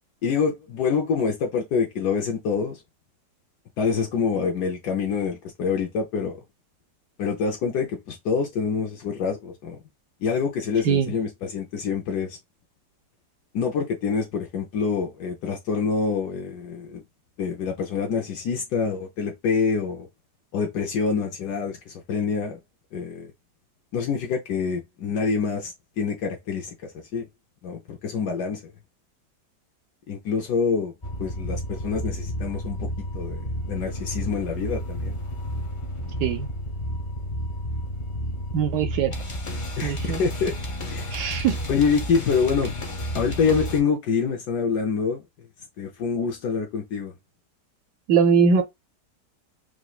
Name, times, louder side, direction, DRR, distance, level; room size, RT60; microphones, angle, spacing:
voice 1, 0.2-2.8 3.8-6.4 7.2-9.8 10.2-12.4 13.5-17.0 17.4-20.1 20.5-22.6 22.9-23.3 23.9-27.3 27.6-28.7 30.1-30.9 31.2-32.9 33.1-35.2 39.8-40.5 40.9-41.3 41.7-42.7 43.1-45.2 45.8-47.1, left 5 dB, 75° left, 1.3 m, -26 dB
sound 1, 31.0-43.8, equal, 50° left, 0.3 m, -31 dB
voice 2, 38.5-39.1 39.8-40.2 41.1-41.6 48.1-48.6, right 6 dB, 80° right, 1.2 m, -21 dB
4.9 x 3.1 x 2.4 m
omnidirectional pair, 1.8 m